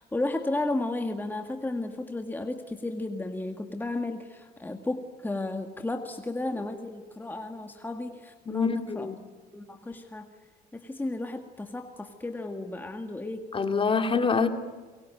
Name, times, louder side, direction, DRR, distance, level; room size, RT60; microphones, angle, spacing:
voice 1, 0.0-9.1 9.5-10.3 10.7-13.4, left 2 dB, 10° left, 5 dB, 1.9 m, -33 dB
voice 2, 8.5-9.2 13.5-14.5, left 5 dB, 30° left, 7 dB, 2.6 m, -25 dB
27.0 x 23.0 x 9.1 m, 1.4 s
cardioid pair, 110°, 17 cm